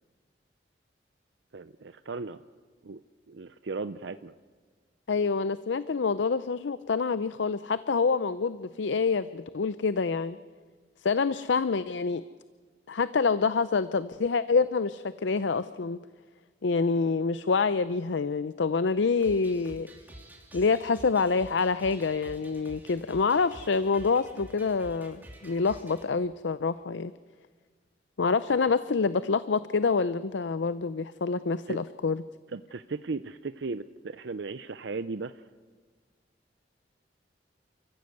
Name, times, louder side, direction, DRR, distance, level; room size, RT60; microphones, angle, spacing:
voice 1, 1.5-2.4 2.8-3.0 3.3-4.3 31.7-31.8 32.5-35.4, right 4 dB, 75° right, 11 dB, 0.6 m, -36 dB
voice 2, 5.1-10.4 11.0-12.2 12.9-16.0 16.6-19.9 20.5-27.1 28.2-32.2, left 4 dB, 85° left, 14 dB, 0.6 m, -27 dB
sound 1, 19.2-26.0, right 1 dB, 10° right, 2.6 m, -49 dB
29.0 x 15.0 x 8.0 m, 1.5 s
head